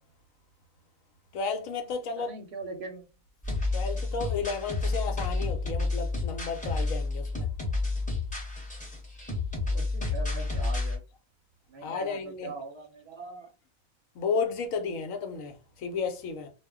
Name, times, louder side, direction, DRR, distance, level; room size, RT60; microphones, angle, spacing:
voice 1, 1.3-2.3 3.7-7.5 11.8-12.5 14.1-16.5, left 5 dB, 75° left, 1.0 m, -33 dB
voice 2, 2.2-3.0 9.6-11.0 11.7-13.5, right 3 dB, 60° right, 0.8 m, -41 dB
sound 1, 3.4-11.0, left 3 dB, 5° left, 0.7 m, -30 dB
2.4 x 2.1 x 3.5 m
omnidirectional pair, 1.4 m